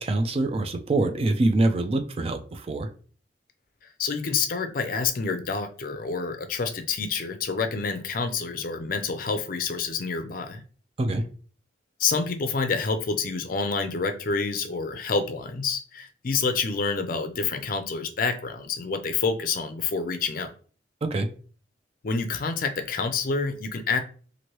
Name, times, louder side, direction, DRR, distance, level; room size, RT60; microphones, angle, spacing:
voice 1, 0.0-2.9 11.0-11.2 21.0-21.3, right 2 dB, 35° right, 7 dB, 0.4 m, -24 dB
voice 2, 4.0-10.6 12.0-20.5 22.0-24.0, left 4 dB, 50° left, 8 dB, 0.4 m, -28 dB
3.0 x 2.6 x 2.9 m, 0.40 s
head